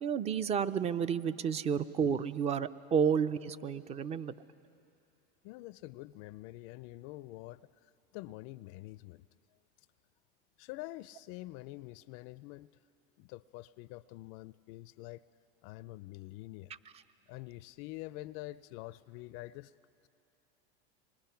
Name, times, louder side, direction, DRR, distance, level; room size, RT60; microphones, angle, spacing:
voice 1, 0.0-4.3, right 7 dB, 20° right, 16 dB, 0.5 m, -31 dB
voice 2, 5.4-7.7 8.1-9.3 10.6-12.7 13.2-15.2 15.6-16.7 17.3-19.7, left 18 dB, 50° left, 17 dB, 0.4 m, -46 dB
25.0 x 21.0 x 5.7 m, 2.7 s
supercardioid pair, 120°, 29 cm